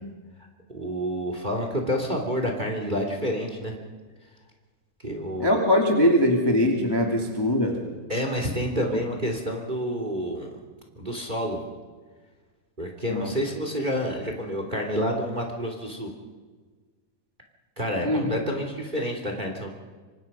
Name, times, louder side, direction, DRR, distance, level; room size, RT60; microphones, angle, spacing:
voice 1, 0.7-3.7 5.0-5.6 8.1-10.6 10.9-11.6 12.8-16.1 17.8-19.7, equal, 15° right, 3 dB, 2.6 m, -29 dB
voice 2, 5.4-7.8 13.1-13.3 18.0-18.3, left 1 dB, 10° left, 1 dB, 2.0 m, -22 dB
26.0 x 25.5 x 5.5 m, 1.4 s
omnidirectional pair, 3.8 m